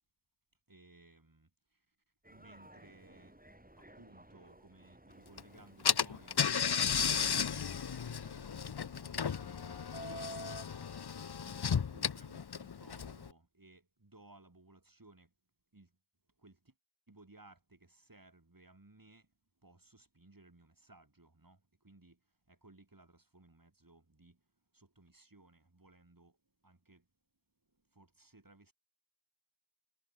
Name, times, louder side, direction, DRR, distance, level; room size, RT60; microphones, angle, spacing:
voice 1, 0.7-2.0 2.3-3.4 3.8-15.3 15.7-16.0 16.4-16.7 17.1-27.1 27.7-28.7, right 2 dB, 45° right, 8.0 m, -61 dB
Subway metro underground, 2.2-10.6, right 1 dB, 15° right, 7.2 m, -53 dB
Car / Engine, 5.4-5.5 5.8-13.3, left 7 dB, 50° left, 0.8 m, -34 dB
wide cardioid pair, 45°, 48 cm